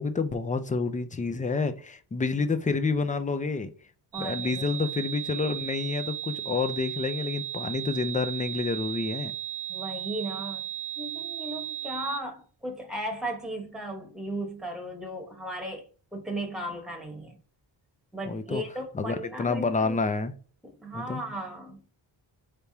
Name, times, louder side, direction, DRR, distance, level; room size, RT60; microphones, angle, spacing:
voice 1, 0.0-3.7 4.2-9.3 18.3-18.6 18.9-20.3 20.9-21.2, left 4 dB, 20° left, 0.4 m, -29 dB
voice 2, 4.1-4.7 9.7-10.7 11.0-17.4 18.1-20.0 20.6-21.8, right 1 dB, ahead, 1.1 m, -36 dB
sound 1, 4.1-12.2, right 11 dB, 70° right, 0.6 m, -35 dB
4.6 x 3.4 x 2.7 m
wide cardioid pair, 120°, 45 cm